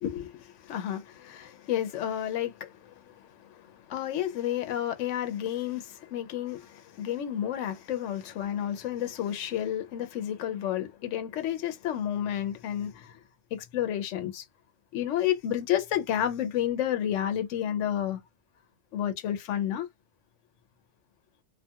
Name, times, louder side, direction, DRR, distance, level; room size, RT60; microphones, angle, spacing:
voice 1, 0.0-3.1 3.5-13.1 13.5-14.4 14.9-18.2 18.9-19.9, left 11 dB, 80° left, 0.9 m, -31 dB
2.5 x 2.3 x 2.7 m
omnidirectional pair, 1.3 m